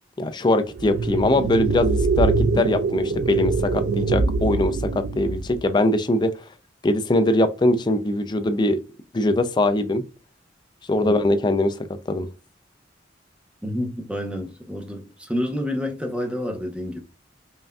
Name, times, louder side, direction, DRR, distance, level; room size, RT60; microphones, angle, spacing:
voice 1, 0.2-6.3 6.8-8.8 9.1-10.0 10.9-11.8 12.1-12.3, left 1 dB, 25° left, 0.4 m, -21 dB
sound 1, 0.7-5.6, right 4 dB, 65° right, 0.4 m, -23 dB
voice 2, 13.6-17.0, left 1 dB, 5° right, 0.8 m, -29 dB
5.4 x 2.6 x 2.3 m
head